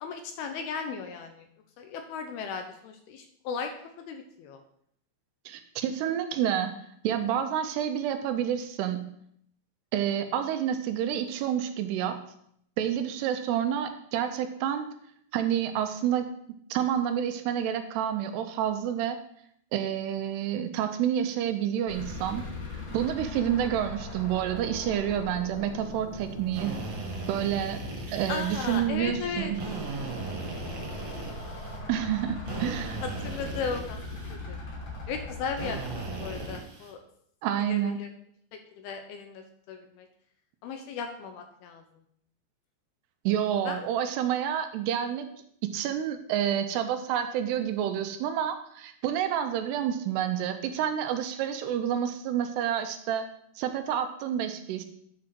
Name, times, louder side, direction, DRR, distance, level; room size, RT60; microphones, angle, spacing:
voice 1, 0.0-1.5 1.8-3.7 4.0-4.6 28.3-29.5 32.5-32.8 33.0-34.0 34.3-34.6 35.1-37.0 37.7-38.1 38.5-40.1 40.6-41.8 43.6-43.9, left 5 dB, 80° left, 6 dB, 2.4 m, -36 dB
voice 2, 5.5-6.7 7.0-9.1 9.9-12.2 12.8-14.9 15.3-16.3 16.7-19.2 19.7-22.4 22.9-26.8 27.3-27.8 28.1-29.6 31.9-33.0 37.4-38.0 43.3-45.3 45.7-53.3 53.6-54.9, right 10 dB, 80° right, 8 dB, 2.7 m, -29 dB
sound 1, 21.9-36.5, left 2 dB, 40° left, 3.5 m, -39 dB
Drill, 26.5-28.8 29.5-31.8 32.5-34.4 35.6-36.9, right 4 dB, 55° right, 2.1 m, -38 dB
9.9 x 4.7 x 6.0 m, 0.69 s
omnidirectional pair, 4.9 m